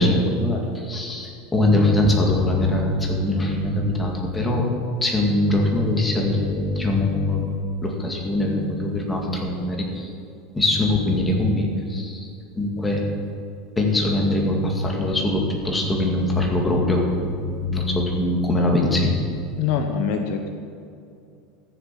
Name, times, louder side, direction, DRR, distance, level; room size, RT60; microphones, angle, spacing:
voice 1, 0.0-4.7 5.0-7.5 7.8-10.1 10.5-12.3 12.6-13.0 13.8-19.1, left 1 dB, 10° left, 0 dB, 2.0 m, -22 dB
voice 2, 19.6-20.5, left 6 dB, 60° left, 6 dB, 1.2 m, -24 dB
14.0 x 7.1 x 7.6 m, 2.5 s
supercardioid pair, 150°, 0 cm